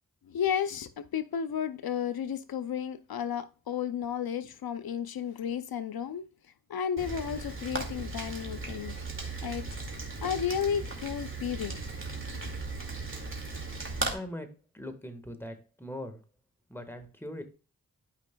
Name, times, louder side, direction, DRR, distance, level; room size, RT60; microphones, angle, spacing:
voice 1, 0.3-6.2 6.7-9.0 9.4-9.6 10.2-11.8, left 8 dB, 80° left, 0.6 m, -33 dB
Rain, 7.0-14.1, right 3 dB, 35° right, 2.1 m, -37 dB
voice 2, 14.1-14.5 14.7-16.2 16.7-17.4, left 1 dB, 5° left, 1.5 m, -40 dB
12.5 x 5.1 x 2.2 m
cardioid pair, 55°, 36 cm